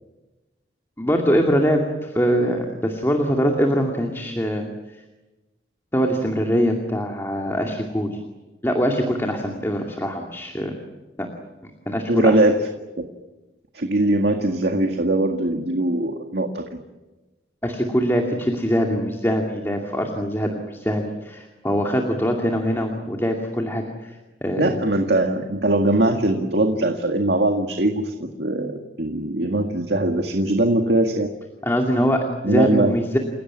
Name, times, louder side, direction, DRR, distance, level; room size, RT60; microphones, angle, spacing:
voice 1, 1.0-4.7 5.9-8.2 8.6-10.7 11.2-11.3 11.9-12.4 17.6-24.8 31.6-33.2, equal, 15° left, 2 dB, 2.4 m, -23 dB
voice 2, 12.1-12.6 13.0-13.1 13.7-16.6 24.6-31.3 32.4-32.9, right 1 dB, 70° right, 4 dB, 2.0 m, -21 dB
30.0 x 17.5 x 9.7 m, 1.1 s
head